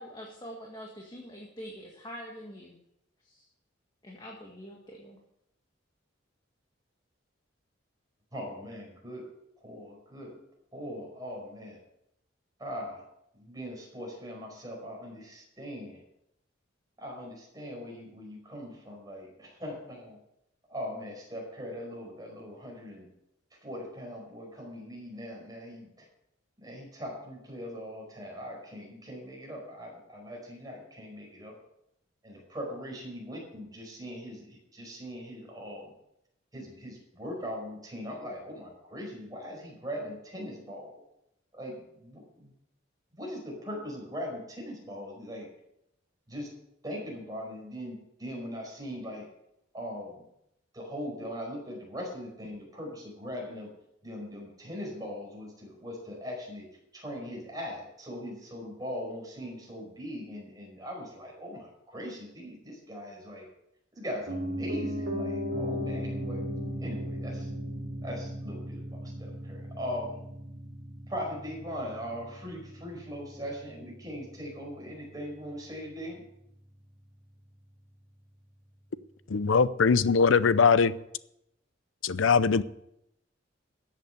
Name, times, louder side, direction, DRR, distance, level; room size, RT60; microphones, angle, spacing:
voice 1, 0.0-2.8 3.2-3.5 4.0-5.2, equal, 20° left, -1 dB, 1.8 m, -45 dB
voice 2, 8.3-9.3 9.6-10.4 10.7-11.8 12.6-13.0 13.3-16.0 17.0-20.2 20.7-23.1 23.6-26.1 26.6-31.6 32.2-35.9 36.5-41.0 41.5-42.5 43.2-45.5 46.3-46.5 46.8-49.3 49.7-50.2 50.7-53.7 54.0-56.7 56.9-63.5 63.9-66.4 66.7-67.5 68.0-70.2 71.1-76.2, equal, 20° right, -1 dB, 5.2 m, -40 dB
Piano, 64.3-74.3 74.6-74.7, equal, 85° right, 2.8 m, -36 dB
voice 3, 79.3-80.9 82.0-82.6, left 5 dB, 85° left, 16 dB, 0.6 m, -21 dB
13.5 x 8.2 x 6.6 m, 0.80 s
head